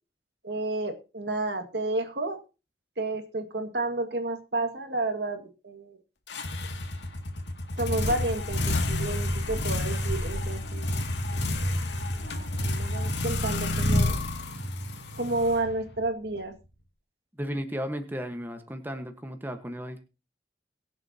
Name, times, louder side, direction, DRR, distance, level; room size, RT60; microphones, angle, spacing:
voice 1, 0.4-2.4 3.0-6.0 7.8-11.0 11.3-11.8 12.1-14.2 15.2-16.5, right 2 dB, 65° right, 6 dB, 2.0 m, -31 dB
sound 1, 6.3-16.1, left 1 dB, 75° left, 2.4 m, -29 dB
voice 2, 17.4-20.0, equal, 10° right, 6 dB, 1.3 m, -34 dB
22.5 x 7.8 x 2.9 m, 0.31 s
head